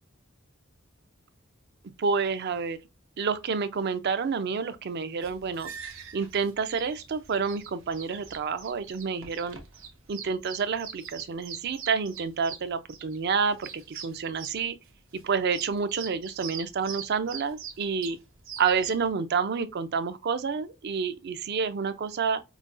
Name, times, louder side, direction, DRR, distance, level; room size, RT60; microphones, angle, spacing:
voice 1, 2.0-2.8 3.2-5.7 6.1-9.6 10.1-14.8 15.1-18.2 18.6-22.4, right 5 dB, 55° right, 0.4 m, -29 dB
sound 1, 5.2-19.1, right 7 dB, 75° right, 0.8 m, -43 dB
5.0 x 2.3 x 2.4 m
head